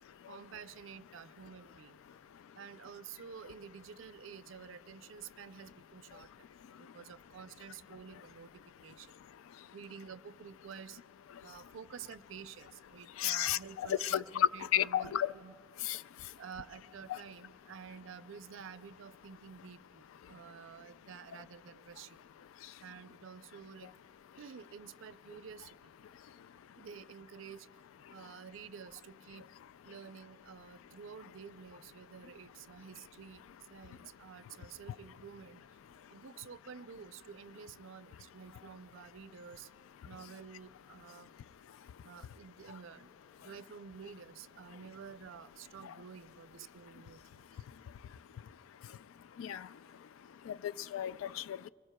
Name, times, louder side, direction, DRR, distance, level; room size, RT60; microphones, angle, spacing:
voice 1, 0.3-2.0 2.5-6.5 6.7-9.1 9.7-11.0 11.4-15.5 16.4-22.2 22.8-23.9 24.4-25.9 26.8-27.7 28.1-29.4 29.8-35.6 36.1-39.7 40.0-41.3 42.0-43.1 43.4-47.6, right 6 dB, 70° right, 0.4 m, -50 dB
voice 2, 13.2-15.3 15.8-16.0 17.1-17.2 49.4-49.7 50.5-51.7, left 10 dB, 80° left, 0.3 m, -32 dB
25.0 x 21.5 x 2.2 m
head